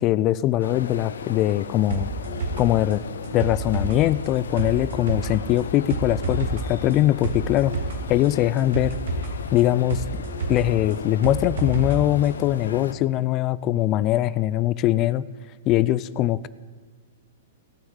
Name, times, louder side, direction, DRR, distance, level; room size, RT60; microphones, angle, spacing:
voice 1, 0.0-2.1 2.6-3.0 3.3-7.7 8.1-9.0 9.5-10.0 10.5-15.2 15.7-16.5, left 14 dB, 35° left, 18 dB, 0.4 m, -22 dB
sound 1, 0.6-12.9, left 6 dB, 85° left, 0.8 m, -36 dB
sound 2, 1.9-12.0 12.2-12.3, right 3 dB, 70° right, 2.5 m, -30 dB
17.5 x 6.4 x 8.0 m, 1.5 s
hypercardioid pair, 125°, 0 cm